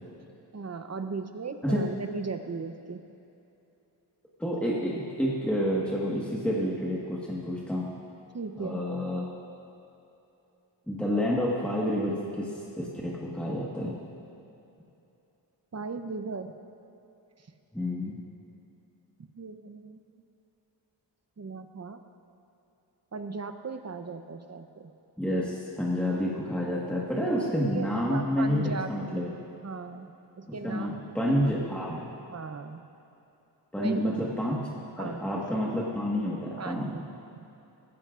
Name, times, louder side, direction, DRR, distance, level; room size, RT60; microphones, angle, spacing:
voice 1, 0.5-3.0 8.3-8.8 15.7-16.5 19.4-20.0 21.4-22.0 23.1-24.9 27.7-29.2 29.6-30.1 30.4-31.3 32.3-32.8 33.8-34.1 35.0-35.2 36.6-37.0 37.3-37.5, right 4 dB, 35° right, 7 dB, 0.8 m, -37 dB
voice 2, 4.4-7.9 8.6-9.3 10.9-12.5 12.8-14.0 17.7-18.2 25.2-29.3 30.6-32.1 33.7-34.6 35.0-37.0, equal, 5° left, -5 dB, 1.5 m, -29 dB
19.0 x 15.5 x 2.5 m, 2.8 s
wide cardioid pair, 100°, 45 cm